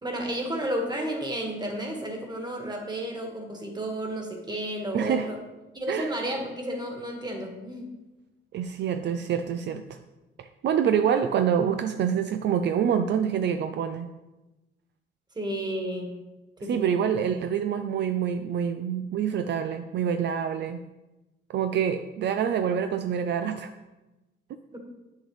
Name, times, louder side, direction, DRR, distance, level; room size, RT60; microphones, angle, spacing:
voice 1, 0.0-5.4 5.7-7.9 15.4-16.2 16.6-16.8 24.7-24.8, right 1 dB, 20° right, 2 dB, 1.7 m, -32 dB
voice 2, 4.9-5.3 5.9-6.1 8.5-10.0 10.6-14.1 16.7-20.8 21.5-23.7, right 8 dB, 60° right, 8 dB, 0.5 m, -26 dB
8.3 x 6.5 x 3.2 m, 1.1 s
cardioid pair, 90°, 20 cm